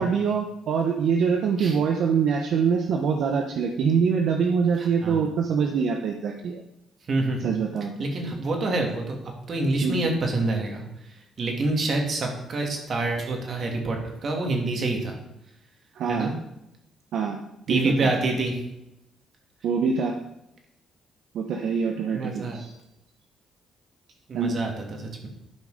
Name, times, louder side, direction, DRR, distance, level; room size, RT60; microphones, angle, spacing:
voice 1, 0.0-6.6 7.4-7.9 9.8-10.0 15.9-16.3 17.1-17.4 17.7-18.1 19.6-20.2 21.3-22.7 24.3-24.6, right 6 dB, 75° right, 2 dB, 0.9 m, -24 dB
voice 2, 7.1-7.5 8.0-9.1 9.5-10.8 11.4-15.2 16.1-16.3 17.7-18.5 22.1-22.6 24.3-25.3, right 2 dB, 50° right, 1 dB, 2.7 m, -26 dB
12.0 x 5.3 x 5.1 m, 0.85 s
cardioid pair, 90°, 0 cm